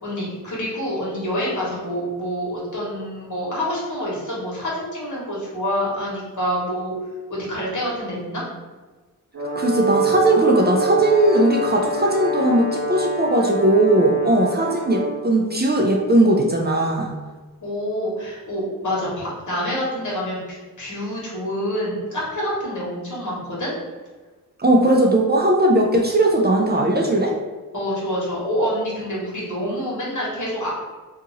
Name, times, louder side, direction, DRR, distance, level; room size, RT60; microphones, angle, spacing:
voice 1, 0.0-6.9 7.3-8.4 17.6-23.7 27.7-30.7, equal, 60° left, -6 dB, 1.4 m, -27 dB
Brass instrument, 9.3-15.3, right 2 dB, 60° right, 1.0 m, -25 dB
voice 2, 9.6-17.1 24.6-27.3, right 1 dB, 30° right, 0 dB, 0.5 m, -18 dB
2.8 x 2.5 x 4.1 m, 1.3 s
wide cardioid pair, 70°, 34 cm